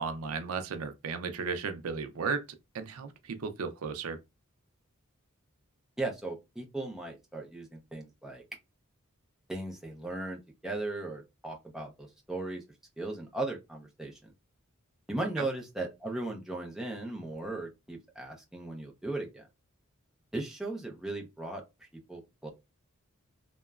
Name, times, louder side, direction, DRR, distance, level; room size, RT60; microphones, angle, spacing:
voice 1, 0.0-2.5 2.7-4.2 15.4-15.5, right 5 dB, 80° right, 0.4 m, -35 dB
voice 2, 6.0-8.4 9.5-12.6 13.0-14.3 15.1-19.5 20.3-22.5, right 2 dB, ahead, 0.5 m, -37 dB
2.8 x 2.2 x 2.3 m
head